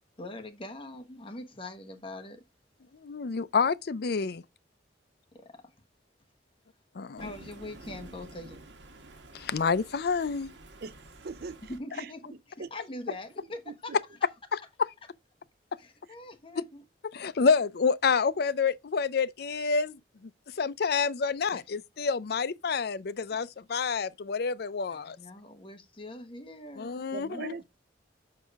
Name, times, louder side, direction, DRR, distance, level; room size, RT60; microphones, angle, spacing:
voice 1, 0.2-2.4 5.3-5.7 7.2-8.6 11.7-14.0 15.8-16.8 21.5-21.6 24.9-27.5, left 1 dB, 30° left, 1.2 m, -43 dB
voice 2, 2.9-4.4 6.9-7.3 9.3-10.5 14.5-14.9 17.1-25.2 26.8-27.5, left 5 dB, 60° left, 0.5 m, -28 dB
Thunder, 7.2-11.8, right 2 dB, 80° right, 1.4 m, -50 dB
voice 3, 10.8-12.1 12.6-12.7 13.7-14.0 27.1-27.6, right 4 dB, 60° right, 0.5 m, -41 dB
6.5 x 4.8 x 3.5 m
head